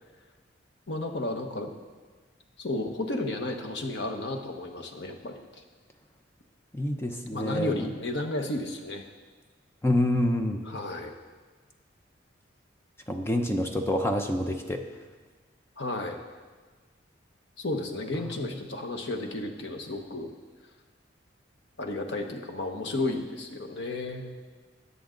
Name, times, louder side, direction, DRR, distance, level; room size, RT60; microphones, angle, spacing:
voice 1, 0.9-1.7 2.6-5.6 7.3-9.0 10.7-11.1 15.8-16.2 17.6-20.3 21.8-24.3, left 2 dB, 60° left, 4 dB, 1.2 m, -33 dB
voice 2, 6.7-7.9 9.8-10.6 13.1-14.8 18.2-18.5, left 1 dB, 15° left, 4 dB, 0.7 m, -27 dB
20.5 x 7.0 x 3.9 m, 1.4 s
head